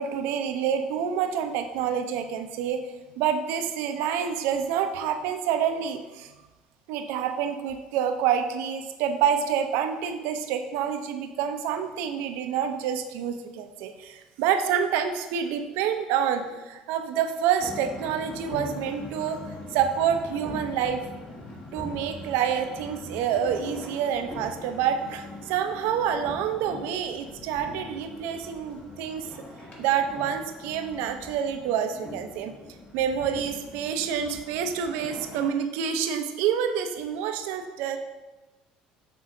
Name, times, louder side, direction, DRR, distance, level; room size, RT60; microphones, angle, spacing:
voice 1, 0.0-2.8 3.2-6.3 6.9-19.4 19.7-21.0 21.7-29.3 29.8-32.5 32.9-38.0, right 8 dB, 75° right, 7 dB, 0.6 m, -27 dB
sound 1, 17.6-35.5, left 2 dB, 35° left, 1.9 m, -42 dB
6.0 x 3.6 x 4.8 m, 1.1 s
hypercardioid pair, 70°, 4 cm